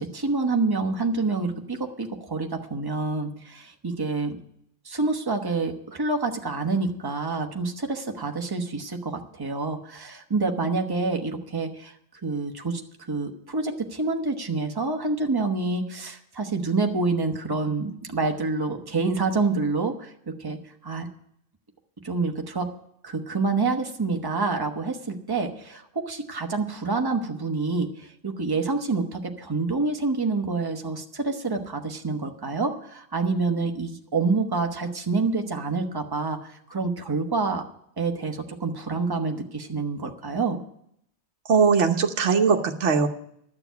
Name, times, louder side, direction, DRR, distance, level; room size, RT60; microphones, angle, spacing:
voice 1, 0.0-4.4 4.8-11.9 12.2-12.8 13.1-20.6 20.8-21.1 22.0-22.7 23.0-37.6 38.0-40.6, right 3 dB, 20° right, 4 dB, 1.1 m, -27 dB
voice 2, 41.5-43.1, right 5 dB, 75° right, 4 dB, 1.3 m, -20 dB
12.0 x 6.9 x 9.3 m, 0.72 s
omnidirectional pair, 1.2 m